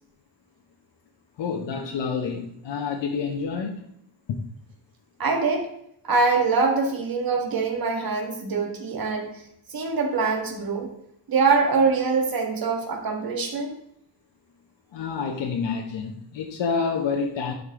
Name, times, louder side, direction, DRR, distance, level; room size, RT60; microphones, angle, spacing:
voice 1, 1.4-3.9 4.3-4.4 14.9-17.5, left 5 dB, 80° left, 1 dB, 1.1 m, -28 dB
voice 2, 5.2-5.7 6.0-9.3 9.7-10.9 11.3-13.7, right 4 dB, 55° right, 3 dB, 1.9 m, -23 dB
11.0 x 5.2 x 3.7 m, 0.74 s
cardioid pair, 125°, 43 cm